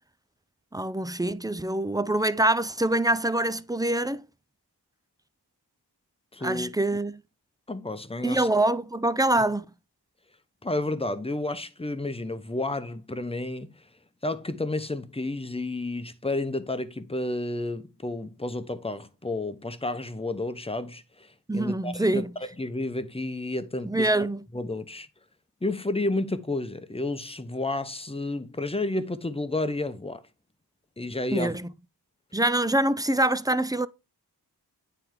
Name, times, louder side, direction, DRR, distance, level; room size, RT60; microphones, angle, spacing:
voice 1, 0.7-4.2 6.4-7.2 8.2-9.6 21.5-22.3 23.8-24.4 31.3-31.7 32.3-33.9, right 1 dB, 10° right, 0.3 m, -25 dB
voice 2, 6.3-6.7 7.7-8.5 10.6-13.8 14.2-22.3 22.6-24.1 24.5-25.1 25.6-30.2 31.0-31.6, left 2 dB, 15° left, 0.8 m, -31 dB
9.2 x 3.4 x 4.6 m
wide cardioid pair, 55°, 41 cm